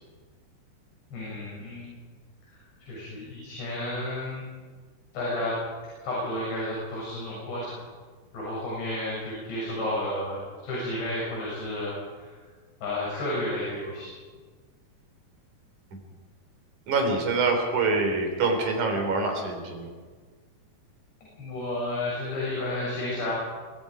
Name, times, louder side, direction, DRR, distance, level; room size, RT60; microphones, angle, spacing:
voice 1, 1.1-1.9 2.9-4.4 5.1-5.6 6.0-7.7 8.3-12.3 12.8-14.1 21.4-23.3, left 1 dB, 80° left, -6 dB, 8.7 m, -31 dB
voice 2, 16.9-19.9, right 3 dB, 50° right, 3 dB, 4.6 m, -25 dB
23.5 x 22.0 x 5.0 m, 1.5 s
omnidirectional pair, 4.9 m